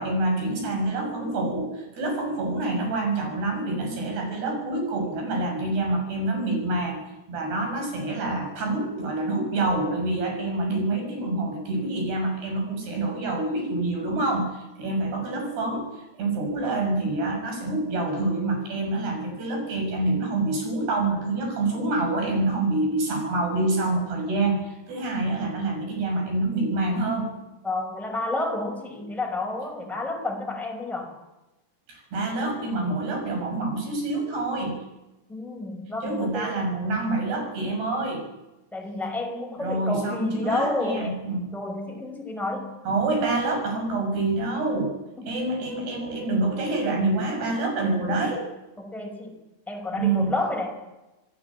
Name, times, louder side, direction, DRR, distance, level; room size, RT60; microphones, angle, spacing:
voice 1, 0.0-7.0 7.3-27.3 31.9-34.8 36.0-38.3 39.6-41.6 42.8-44.9 45.3-48.5 49.9-50.3, right 2 dB, 80° right, 4 dB, 8.7 m, -27 dB
voice 2, 27.6-31.1 35.3-36.7 38.7-41.2 41.5-42.8 45.2-45.3 48.8-49.3 49.7-50.8, left 2 dB, ahead, 3 dB, 5.0 m, -30 dB
28.0 x 18.0 x 8.8 m, 1.0 s
omnidirectional pair, 4.6 m